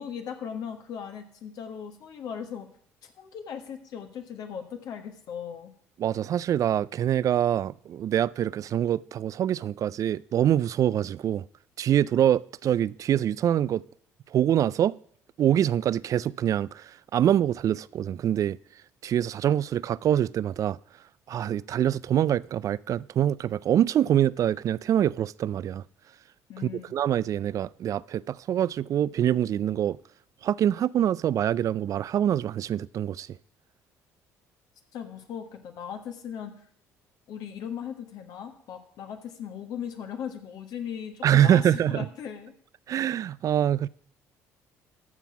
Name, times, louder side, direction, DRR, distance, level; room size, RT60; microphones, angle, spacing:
voice 1, 0.0-2.7 3.0-5.7 26.5-26.9 34.9-36.5 37.3-42.5, left 8 dB, 65° left, 1.4 m, -38 dB
voice 2, 6.0-11.4 11.8-13.8 14.3-15.0 15.4-18.6 19.0-20.8 21.3-25.8 26.6-30.0 30.4-33.4 41.2-42.1 42.9-43.9, right 10 dB, 50° right, 0.3 m, -25 dB
13.5 x 5.8 x 6.0 m
hypercardioid pair, 65°, 7 cm